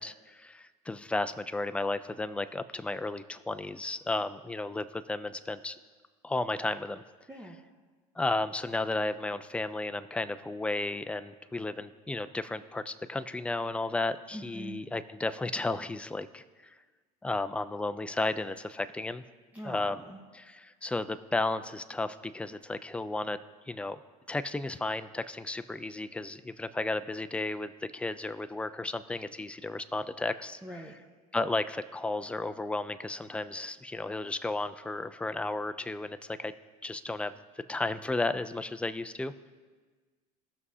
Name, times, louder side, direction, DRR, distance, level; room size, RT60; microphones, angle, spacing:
voice 1, 0.0-5.8 6.2-7.0 8.2-16.7 17.2-19.2 19.6-20.0 20.3-23.4 23.7-24.0 24.3-30.6 31.3-36.5 36.8-37.3 37.7-39.3, left 2 dB, 5° left, 11 dB, 0.4 m, -33 dB
voice 2, 14.3-14.8 19.5-20.2 30.6-30.9, equal, 10° right, 0 dB, 1.0 m, -43 dB
16.5 x 6.1 x 2.8 m, 1.4 s
supercardioid pair, 90°, 18 cm